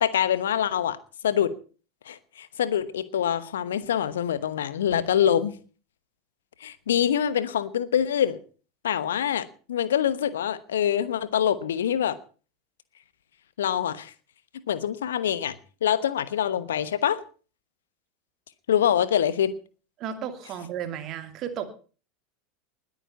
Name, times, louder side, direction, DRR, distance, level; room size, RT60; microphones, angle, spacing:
voice 1, 0.0-1.0 1.2-1.5 2.0-5.6 6.6-8.4 8.8-12.2 13.6-14.1 14.7-15.6 15.8-17.2 18.7-19.5, left 9 dB, 70° left, 16 dB, 1.1 m, -25 dB
voice 2, 20.0-21.6, right 9 dB, 40° right, 8 dB, 2.7 m, -33 dB
20.5 x 9.2 x 5.7 m, 0.39 s
figure-of-eight pair, 80°, 0 cm